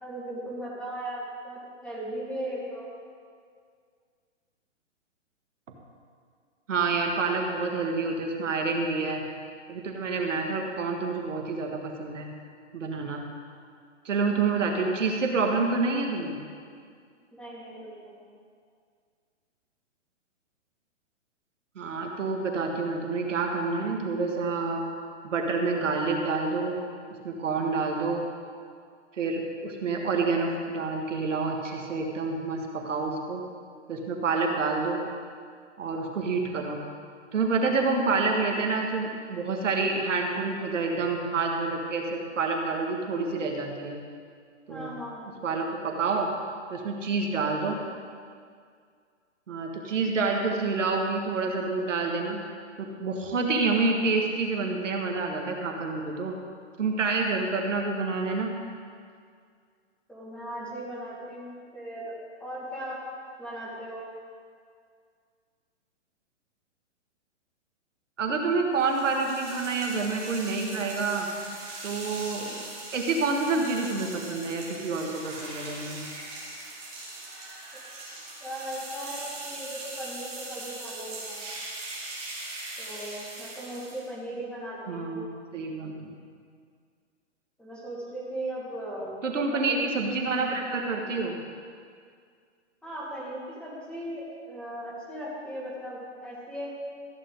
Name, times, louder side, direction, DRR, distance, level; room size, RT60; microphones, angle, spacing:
voice 1, 0.0-2.9 17.3-18.4 44.7-45.3 60.1-62.1 62.4-63.0 63.4-64.0 78.4-81.4 82.8-85.2 87.6-89.2 89.5-89.8 92.8-96.7, right 1 dB, 5° left, -6 dB, 2.0 m, -37 dB
voice 2, 6.7-9.2 9.7-12.3 12.7-13.2 14.1-16.4 21.8-24.8 25.2-26.7 27.2-28.3 29.2-33.4 33.9-35.0 35.8-36.8 37.3-44.0 44.7-44.9 45.4-46.3 46.7-47.8 49.5-52.4 52.8-56.3 56.8-58.5 68.2-71.3 71.8-72.6 72.9-76.0 84.9-85.2 85.5-86.2 89.2-91.4, right 4 dB, 80° right, 1 dB, 1.8 m, -28 dB
sound 1, 68.8-84.1, right 2 dB, 20° right, 3.3 m, -40 dB
14.5 x 8.5 x 3.9 m, 2.1 s
hypercardioid pair, 145°, 37 cm